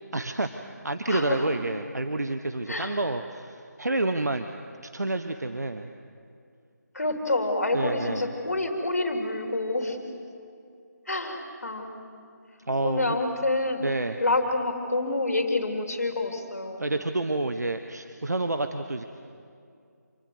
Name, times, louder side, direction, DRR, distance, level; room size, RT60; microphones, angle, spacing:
voice 1, 0.1-4.5 4.9-5.9 7.7-8.3 12.7-13.2 13.8-14.2 16.8-19.0, right 2 dB, 65° right, 7 dB, 1.1 m, -29 dB
voice 2, 1.1-1.5 2.7-3.0 6.9-10.0 11.1-12.2 12.8-13.8 14.2-16.8, left 2 dB, 60° left, 4 dB, 3.5 m, -28 dB
27.0 x 20.0 x 8.1 m, 2.4 s
figure-of-eight pair, 160°, 10 cm